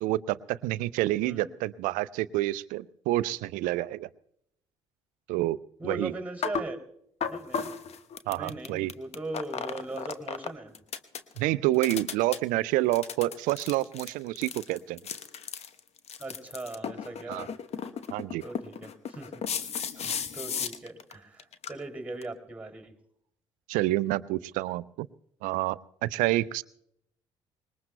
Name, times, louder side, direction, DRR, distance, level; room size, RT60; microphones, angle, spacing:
voice 1, 0.0-4.1 5.3-5.6 5.8-6.1 8.3-8.9 11.4-15.0 17.3-17.5 18.1-18.4 23.7-25.1 25.4-26.6, right 17 dB, 60° right, 19 dB, 0.5 m, -28 dB
voice 2, 5.8-6.8 7.3-7.7 8.3-10.7 16.2-17.5 18.4-19.3 20.0-22.9, right 2 dB, 10° right, 4 dB, 2.9 m, -39 dB
sound 1, 6.4-6.7 7.2-10.5 10.7-11.4 11.7-12.4 12.9-21.1 21.4-21.7 22.2-22.3, left 7 dB, 45° left, 1.0 m, -35 dB
25.5 x 20.5 x 2.2 m, 0.72 s
figure-of-eight pair, 50°, 15 cm